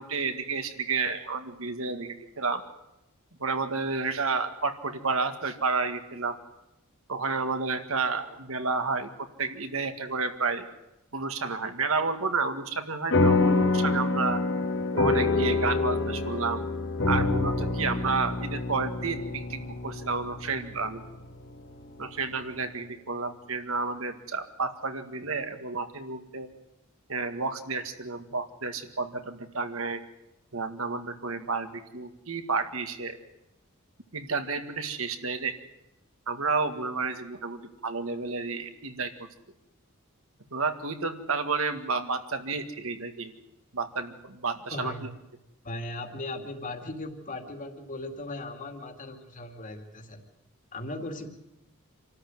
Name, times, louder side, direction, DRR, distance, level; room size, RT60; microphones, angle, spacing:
voice 1, 0.0-2.6 3.4-6.4 7.1-10.7 11.1-14.4 14.9-16.6 17.1-21.0 22.0-26.5 27.1-30.0 30.5-33.2 34.1-35.6 36.3-39.1 40.5-43.3 43.7-45.1, right 4 dB, 70° right, 7 dB, 1.9 m, -31 dB
sound 1, 13.1-21.9, left 3 dB, 60° left, 1.8 m, -27 dB
voice 2, 44.7-45.1 45.6-50.2 50.7-51.3, left 2 dB, 40° left, 4 dB, 2.6 m, -38 dB
26.5 x 13.5 x 9.4 m, 0.89 s
head